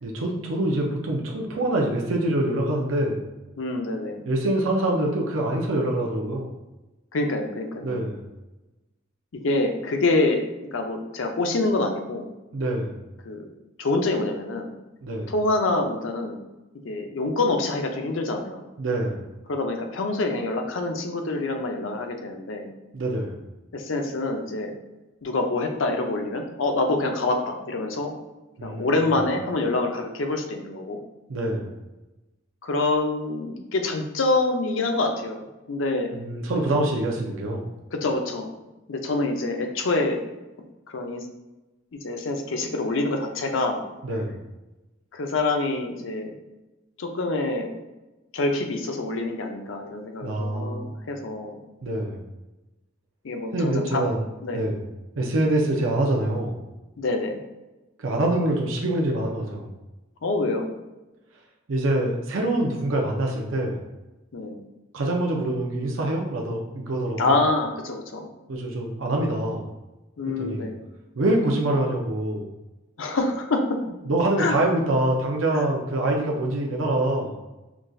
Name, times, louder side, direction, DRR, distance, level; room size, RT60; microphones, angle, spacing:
voice 1, 0.0-3.2 4.3-6.5 7.8-8.3 12.5-13.0 15.0-15.3 18.8-19.3 22.9-23.4 28.6-28.9 31.3-31.7 36.1-37.7 44.0-44.4 50.2-51.0 51.8-52.2 53.5-54.3 54.5-54.9 55.2-56.6 58.0-59.7 61.7-63.8 64.9-67.4 68.5-69.7 70.4-70.7 71.2-72.5 74.0-77.4, right 1 dB, 85° right, 0 dB, 0.6 m, -25 dB
voice 2, 3.6-4.2 7.1-8.0 9.3-10.4 10.7-12.3 13.2-13.4 13.8-14.7 15.3-16.4 16.8-18.6 19.5-22.7 23.7-24.7 25.2-28.1 28.6-31.0 32.6-35.4 35.7-36.2 37.9-38.5 38.9-40.2 40.9-41.2 42.0-43.9 45.1-46.3 47.0-47.7 48.3-51.6 53.2-54.0 54.4-54.6 57.0-57.4 60.2-60.7 64.3-64.6 67.2-68.3 70.2-70.8 73.0-73.8 74.4-74.5 75.5-75.7, left 2 dB, 75° left, 4 dB, 0.5 m, -26 dB
5.9 x 2.3 x 2.6 m, 1.1 s
head